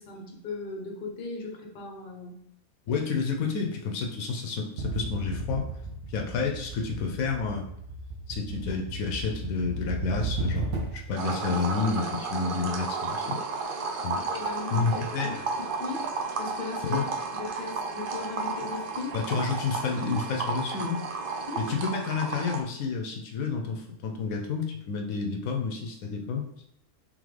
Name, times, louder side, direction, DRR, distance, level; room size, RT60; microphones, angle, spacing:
voice 1, 0.0-2.4 14.1-16.0 16.4-17.0 17.3-19.2 21.5-21.6, left 4 dB, 45° left, 1 dB, 0.9 m, -38 dB
voice 2, 2.9-5.7 6.1-7.7 8.3-13.4 14.0-14.2 14.7-15.4 16.8-17.0 19.1-21.0 21.6-26.5, left 5 dB, 80° left, 2 dB, 1.1 m, -30 dB
sound 1, 4.8-11.2, right 3 dB, 90° right, 1.3 m, -34 dB
sound 2, 11.2-22.6, right 4 dB, 60° right, 0.5 m, -33 dB
3.8 x 3.6 x 3.2 m, 0.74 s
omnidirectional pair, 1.5 m